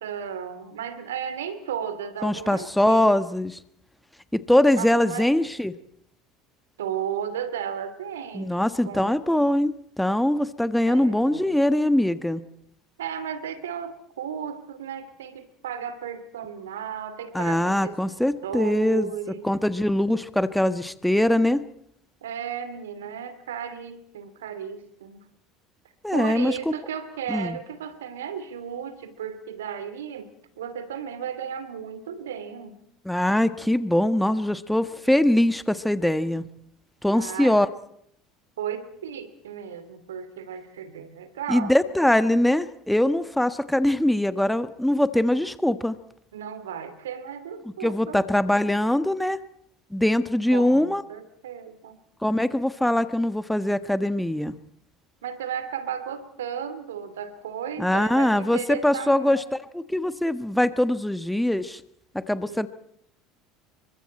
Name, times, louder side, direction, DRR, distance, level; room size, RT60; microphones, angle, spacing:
voice 1, 0.0-3.1 4.8-5.3 6.8-8.5 8.9-9.4 10.8-11.6 13.0-18.0 18.4-19.5 22.2-25.2 26.1-30.3 30.6-32.8 37.1-37.6 38.6-41.8 46.3-48.2 50.5-52.0 55.2-59.4 62.5-62.7, right 8 dB, 70° right, 13 dB, 2.6 m, -34 dB
voice 2, 2.2-3.6 4.3-5.7 8.3-12.4 17.3-19.1 19.4-21.6 26.0-26.6 27.3-27.6 33.0-36.4 37.0-37.7 41.5-46.0 47.8-49.4 49.9-51.0 52.2-54.5 57.8-61.8 62.1-62.7, left 1 dB, 5° left, 12 dB, 1.4 m, -22 dB
29.5 x 24.0 x 4.4 m, 0.70 s
figure-of-eight pair, 70°, 0 cm